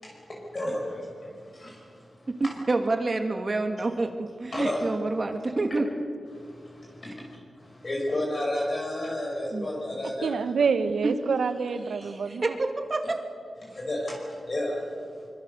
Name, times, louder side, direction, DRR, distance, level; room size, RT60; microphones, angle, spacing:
voice 1, 0.0-2.5 4.5-4.8 6.3-10.3 12.0-12.1 13.6-15.3, left 1 dB, 40° left, -2 dB, 5.8 m, -33 dB
voice 2, 2.7-5.9 9.5-9.7 11.0-11.1 11.9-13.2, right 2 dB, 35° right, 5 dB, 2.5 m, -28 dB
voice 3, 10.2-12.5, right 5 dB, 85° right, 10 dB, 1.4 m, -27 dB
25.0 x 24.0 x 6.9 m, 2.3 s
wide cardioid pair, 105°, 0 cm